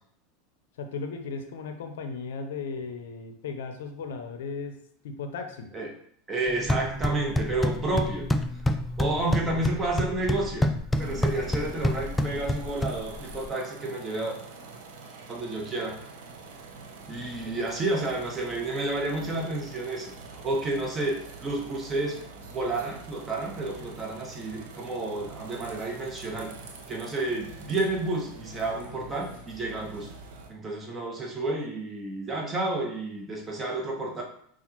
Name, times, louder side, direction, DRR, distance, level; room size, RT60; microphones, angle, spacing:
voice 1, 0.8-4.8 5.0-5.7 9.1-9.6, left 4 dB, 75° left, 6 dB, 0.5 m, -36 dB
voice 2, 6.3-8.3 9.0-10.7 11.0-14.4 15.3-15.9 17.1-22.2 22.5-26.5 26.9-30.1 30.5-34.2, right 2 dB, 25° right, 0 dB, 1.1 m, -30 dB
sound 1, 6.5-13.5, left 1 dB, 15° left, 0.4 m, -28 dB
sound 2, 10.9-30.5, right 3 dB, 70° right, 0.7 m, -45 dB
5.7 x 2.4 x 2.9 m, 0.65 s
hypercardioid pair, 95°, 0 cm